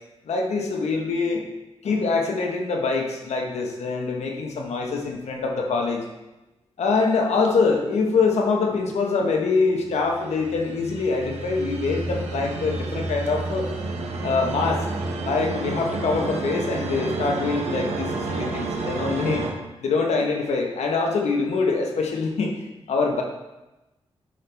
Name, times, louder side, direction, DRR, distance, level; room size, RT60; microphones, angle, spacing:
voice 1, 0.2-1.4 1.8-6.1 6.8-13.7 14.2-14.9 15.2-19.4 19.8-22.6 22.9-23.2, left 4 dB, 85° left, 1 dB, 1.2 m, -24 dB
sound 1, 9.8-19.5, right 3 dB, 80° right, 1.0 m, -30 dB
9.1 x 6.2 x 3.5 m, 1.0 s
cardioid pair, 60°, 11 cm